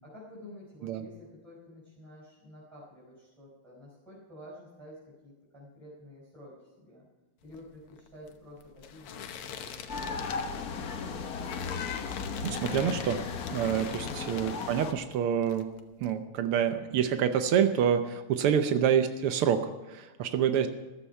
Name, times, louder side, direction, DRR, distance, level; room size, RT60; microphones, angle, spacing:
voice 1, 0.0-7.1 7.4-11.2 13.9-14.3 18.4-18.7, left 1 dB, ahead, -7 dB, 4.9 m, -50 dB
sound 1, 7.4-15.2 15.4-16.1, left 7 dB, 90° left, 2.0 m, -44 dB
sound 2, 9.9-14.9, left 5 dB, 50° left, 1.3 m, -35 dB
voice 2, 12.4-15.7 16.0-20.7, right 8 dB, 85° right, 8 dB, 1.7 m, -27 dB
15.0 x 13.0 x 5.6 m, 1.2 s
omnidirectional pair, 2.4 m